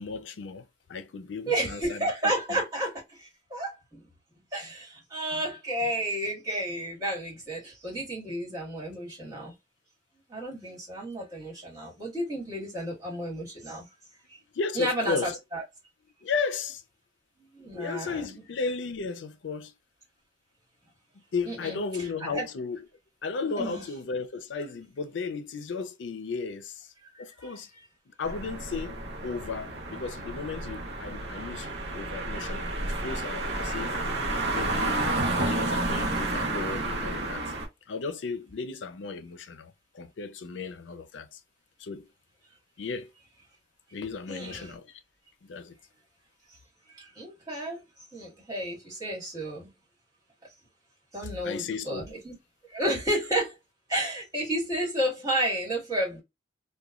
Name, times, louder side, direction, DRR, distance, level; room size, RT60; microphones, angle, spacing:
voice 1, 0.0-2.6 14.5-15.4 16.2-16.8 17.7-19.7 21.3-22.8 23.2-26.9 27.2-27.7 28.1-29.0 29.2-33.9 34.5-37.5 37.9-41.4 41.8-42.1 42.8-43.1 43.9-45.0 45.4-45.8 51.4-52.1, left 4 dB, 90° left, 0.5 m, -35 dB
voice 2, 1.5-4.0 4.5-9.5 10.3-13.9 14.3-14.4 14.7-15.6 17.5-18.4 21.4-22.4 23.6-23.8 27.1-27.6 33.7-33.8 44.3-44.8 46.9-47.8 48.1-49.7 51.1-52.3 52.7-53.6 53.9-56.2, right 1 dB, 20° right, 1.7 m, -32 dB
sound 1, 28.2-37.7, right 2 dB, 65° right, 0.7 m, -31 dB
3.0 x 2.2 x 2.4 m
head